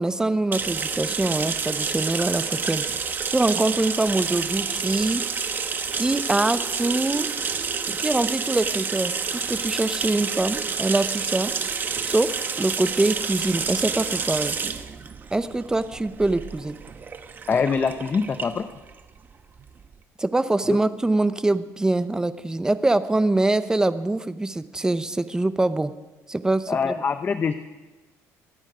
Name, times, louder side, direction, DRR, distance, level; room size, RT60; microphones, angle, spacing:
voice 1, 0.0-2.8 3.3-5.2 5.9-7.3 7.9-11.5 12.0-14.6 15.3-16.8 20.2-25.9 26.3-26.9, right 2 dB, 10° right, 12 dB, 0.7 m, -24 dB
sound 1, 0.5-19.9, right 5 dB, 30° right, 1.0 m, -29 dB
voice 2, 17.5-18.7 20.7-20.8 26.7-27.5, left 5 dB, 30° left, 10 dB, 0.7 m, -24 dB
24.0 x 9.0 x 5.0 m, 1.2 s
cardioid pair, 115°, 6 cm